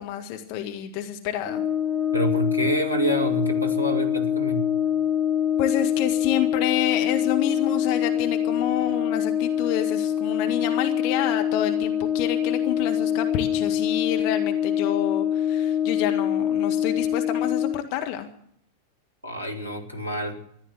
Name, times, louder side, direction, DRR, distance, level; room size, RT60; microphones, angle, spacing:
voice 1, 0.0-1.6 5.6-18.3, left 11 dB, 45° left, 5 dB, 1.6 m, -29 dB
Brass instrument, 1.4-17.8, left 9 dB, 10° left, 1.7 m, -24 dB
voice 2, 2.1-4.7 19.2-20.4, equal, 90° left, 3 dB, 2.4 m, -27 dB
15.0 x 11.5 x 7.9 m, 0.69 s
figure-of-eight pair, 90°, 0 cm